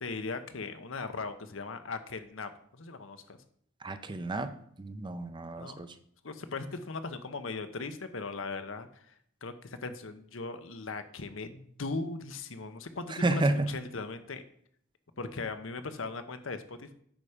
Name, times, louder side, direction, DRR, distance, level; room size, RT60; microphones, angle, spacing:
voice 1, 0.0-3.4 5.6-5.8 6.2-9.1 9.4-14.4 15.2-16.9, left 3 dB, 75° left, 9 dB, 0.9 m, -39 dB
voice 2, 3.8-4.5 4.8-5.9 13.2-13.7, right 2 dB, 25° right, 10 dB, 0.6 m, -30 dB
9.0 x 5.6 x 5.0 m, 0.64 s
head